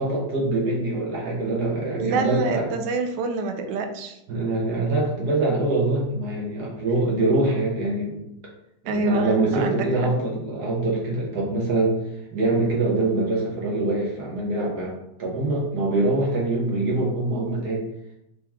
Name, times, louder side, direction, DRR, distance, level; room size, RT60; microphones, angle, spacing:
voice 1, 0.0-2.7 4.3-8.2 8.8-12.0 12.3-14.9 15.2-17.9, right 2 dB, 65° right, -3 dB, 1.8 m, -24 dB
voice 2, 2.0-4.2 8.9-9.9, right 3 dB, 85° right, 6 dB, 1.3 m, -26 dB
4.6 x 2.9 x 3.5 m, 0.85 s
omnidirectional pair, 1.9 m